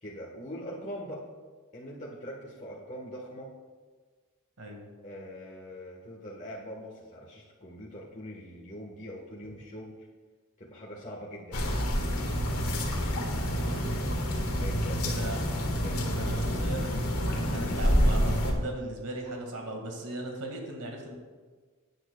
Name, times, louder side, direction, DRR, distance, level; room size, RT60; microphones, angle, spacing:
voice 1, 0.0-1.2 1.7-3.5 5.0-9.9 10.6-11.7 14.5-15.3 15.8-16.8, equal, 35° left, -5 dB, 1.5 m, -42 dB
sound 1, 11.5-18.5, equal, 70° left, 1.8 m, -28 dB
voice 2, 13.3-13.9 15.0-15.4 16.1-16.9 17.5-21.1, right 2 dB, 90° right, 1 dB, 2.1 m, -38 dB
17.0 x 9.0 x 2.4 m, 1.5 s
head